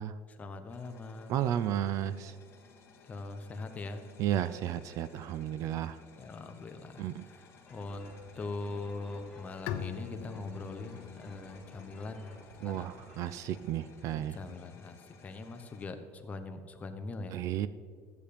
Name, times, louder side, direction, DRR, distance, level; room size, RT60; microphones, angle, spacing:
voice 1, 0.3-1.4 3.0-4.1 5.9-12.3 12.6-13.0 14.3-17.4, left 3 dB, 20° left, 7 dB, 1.0 m, -42 dB
sound 1, 0.7-15.9, left 5 dB, 35° left, 1.7 m, -59 dB
voice 2, 1.3-2.4 4.2-6.0 7.0-7.2 12.6-14.4 17.3-17.7, right 11 dB, 50° right, 15 dB, 0.4 m, -33 dB
sound 2, 7.7-13.6, left 1 dB, 5° left, 2.8 m, -55 dB
Bowed string instrument, 9.7-13.2, left 9 dB, 80° left, 0.7 m, -43 dB
13.5 x 8.4 x 5.1 m, 2.1 s
cardioid pair, 145°, 7 cm